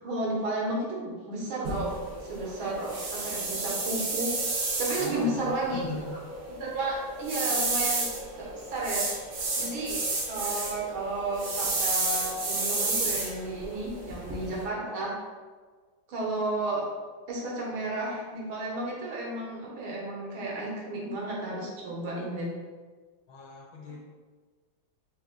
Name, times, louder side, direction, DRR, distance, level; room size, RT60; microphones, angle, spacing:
voice 1, 0.0-1.9 2.2-4.3 4.8-5.8 6.6-8.1 8.4-9.2 9.6-10.0 10.3-15.1 16.1-16.8 17.3-22.5 23.9-24.0, right 2 dB, 80° right, -4 dB, 1.9 m, -32 dB
sound 1, 1.6-14.6, right 3 dB, 55° right, 0.9 m, -32 dB
voice 2, 5.0-6.0 23.3-24.0, left 4 dB, 75° left, -1 dB, 1.5 m, -39 dB
4.1 x 2.9 x 3.6 m, 1.4 s
omnidirectional pair, 2.3 m